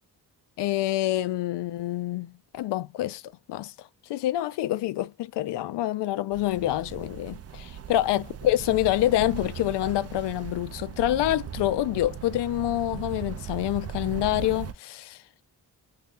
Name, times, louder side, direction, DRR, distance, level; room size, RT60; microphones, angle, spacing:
voice 1, 0.6-3.2 3.5-3.7 4.1-15.2, left 14 dB, 70° left, 0.5 m, -27 dB
sound 1, 6.3-14.7, right 9 dB, 35° right, 0.5 m, -38 dB
2.8 x 2.3 x 3.5 m
supercardioid pair, 55°, 43 cm